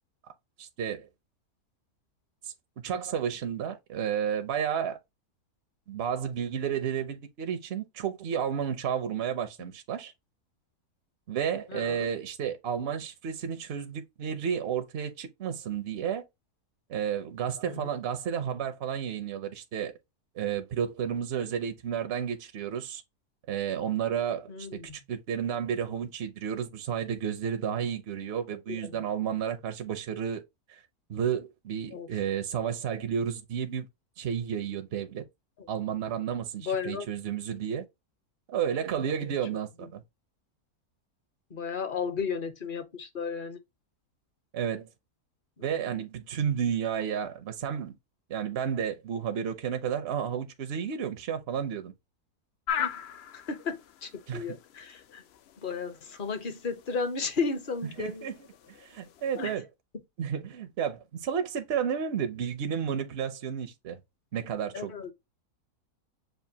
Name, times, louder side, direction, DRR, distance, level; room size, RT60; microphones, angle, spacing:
voice 1, 0.6-1.1 2.4-2.5 2.8-5.0 5.9-10.1 11.3-16.2 16.9-19.9 20.3-23.0 23.5-30.4 30.7-30.8 31.1-33.9 34.2-35.2 35.7-37.8 38.5-40.0 44.5-44.9 45.6-47.9 48.3-51.9 54.3-54.6 58.0-58.4 58.7-59.6 60.2-64.0 64.3-64.9, right 8 dB, 60° right, 0.7 m, -32 dB
voice 2, 11.7-12.1 17.6-17.9 24.5-25.0 28.7-29.0 31.9-32.1 35.6-35.7 36.6-37.1 39.2-39.3 41.5-43.6 45.6-45.7 52.8-52.9 53.3-55.2 55.6-58.3 59.3-59.5 64.7-65.1, left 5 dB, 45° left, 0.8 m, -34 dB
sound 1, 52.7-59.6, left 8 dB, 75° left, 0.5 m, -40 dB
6.8 x 2.5 x 2.7 m
omnidirectional pair, 1.6 m